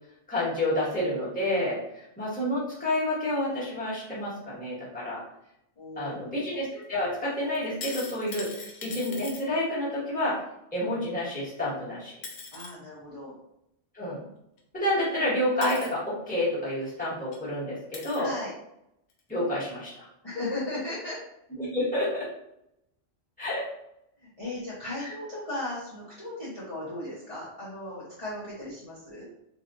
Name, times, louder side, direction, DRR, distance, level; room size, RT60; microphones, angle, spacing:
voice 1, 0.3-5.2 6.0-10.4 10.7-12.1 13.9-14.2 14.7-18.3 19.3-20.1 21.6-22.3 23.4-23.7 25.0-25.1, left 1 dB, 5° left, -10 dB, 1.4 m, -29 dB
voice 2, 5.8-6.4 12.5-13.3 18.1-18.5 20.2-21.2 24.2-29.3, left 2 dB, 30° left, -10 dB, 1.0 m, -36 dB
sound 1, 7.5-9.4 11.7-11.8 12.2-12.7 14.6-14.7 15.6-15.9 16.9-17.0 17.3-17.4 17.9-18.3 19.1-19.2, left 4 dB, 65° left, 0.8 m, -40 dB
3.1 x 2.7 x 2.5 m, 0.80 s
omnidirectional pair, 1.3 m